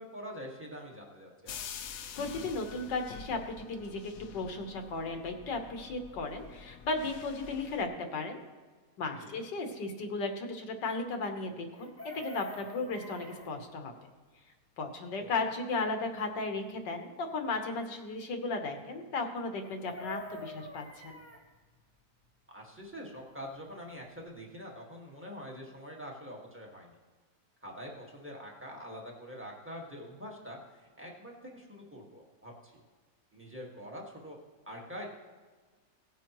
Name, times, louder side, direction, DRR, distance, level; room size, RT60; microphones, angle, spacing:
voice 1, 0.0-1.5 9.2-9.4 15.2-15.3 22.5-27.0 27.6-32.8 33.3-34.4 34.7-35.1, equal, 5° right, -2 dB, 1.6 m, -45 dB
sound 1, 1.5-7.8, left 7 dB, 65° left, 1.0 m, -47 dB
voice 2, 2.2-8.4 9.0-13.9 14.8-21.2, left 3 dB, 80° left, 5 dB, 1.8 m, -35 dB
Chicken rooster, 11.7-13.5 19.6-21.4 23.7-23.8 24.0-24.3, left 1 dB, 10° left, 1.1 m, -45 dB
17.0 x 9.1 x 3.1 m, 1.4 s
omnidirectional pair, 1.9 m